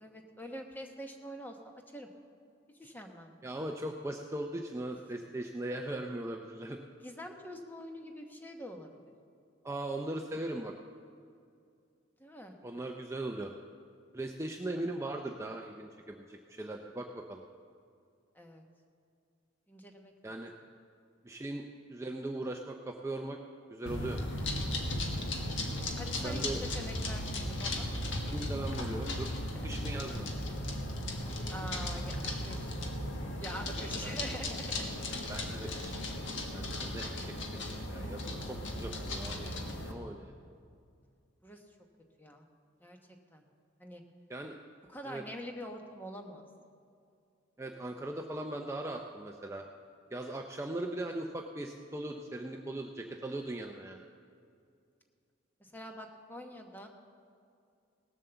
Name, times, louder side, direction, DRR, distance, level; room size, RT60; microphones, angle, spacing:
voice 1, 0.0-1.6 1.9-2.1 2.8-3.3 7.0-9.0 12.2-12.6 18.3-18.6 19.7-20.1 26.0-26.4 26.7-27.9 29.5-29.8 31.5-32.7 33.4-34.9 36.5-36.6 41.4-41.6 42.2-42.4 42.8-43.0 43.3-43.4 43.8-44.0 44.9-46.4 55.6-56.9, equal, 10° left, 3 dB, 1.1 m, -45 dB
voice 2, 3.4-6.8 9.6-10.7 12.6-13.5 14.1-17.4 20.2-20.5 21.2-21.6 21.9-23.4 23.7-24.2 26.2-26.6 28.3-29.3 29.6-30.3 34.0-34.2 35.3-36.0 36.5-39.6 39.8-40.3 44.3-44.6 45.0-45.2 47.6-49.6 50.1-54.1, right 1 dB, 15° right, 2 dB, 0.5 m, -39 dB
sound 1, 23.9-39.9, left 1 dB, 80° left, 1.5 m, -36 dB
18.0 x 7.4 x 6.9 m, 2.4 s
head